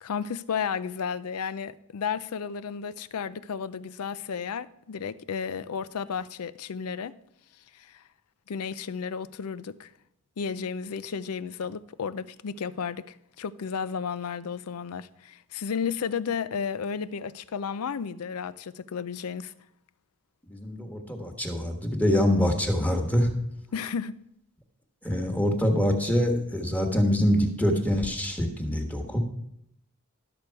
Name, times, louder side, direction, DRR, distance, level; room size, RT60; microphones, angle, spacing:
voice 1, 0.0-7.1 7.7-8.0 8.5-9.9 10.4-19.5 23.7-24.1, left 6 dB, 80° left, 0.5 m, -33 dB
voice 2, 20.5-23.3 25.0-29.2, equal, 5° left, 1.3 m, -25 dB
12.0 x 6.8 x 4.6 m
head